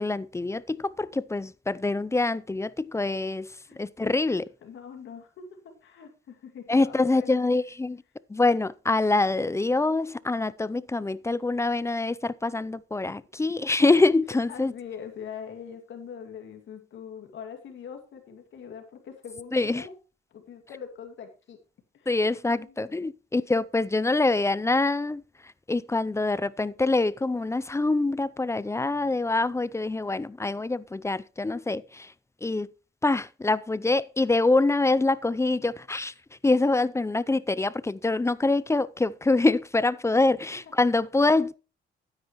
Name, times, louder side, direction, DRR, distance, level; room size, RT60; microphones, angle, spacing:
voice 1, 0.0-4.4 6.7-8.0 8.3-14.7 19.5-19.9 22.1-32.1 32.4-32.7 33.0-36.1 36.4-41.5, left 2 dB, 15° left, 0.5 m, -25 dB
voice 2, 3.6-4.2 4.6-7.4 14.3-19.9 20.3-21.6 21.9-22.9, left 7 dB, 70° left, 2.4 m, -43 dB
12.5 x 9.7 x 3.0 m
cardioid pair, 90°, 20 cm